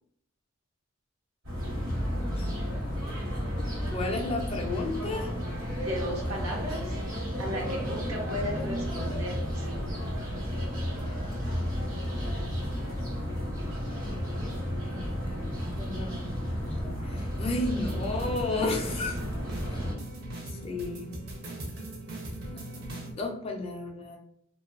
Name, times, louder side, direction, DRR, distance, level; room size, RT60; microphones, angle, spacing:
sound 1, 1.4-19.9, equal, 65° right, 1.0 m, -32 dB
voice 1, 3.9-5.3 14.9-19.2 19.7-19.8 20.5-21.1 23.2-24.2, left 2 dB, 25° left, 2 dB, 0.3 m, -33 dB
voice 2, 5.8-7.0 7.4-9.8, equal, 85° right, -1 dB, 0.8 m, -36 dB
sound 2, 17.9-23.1, right 1 dB, 50° right, 0.6 m, -40 dB
2.5 x 2.2 x 2.4 m, 0.76 s
head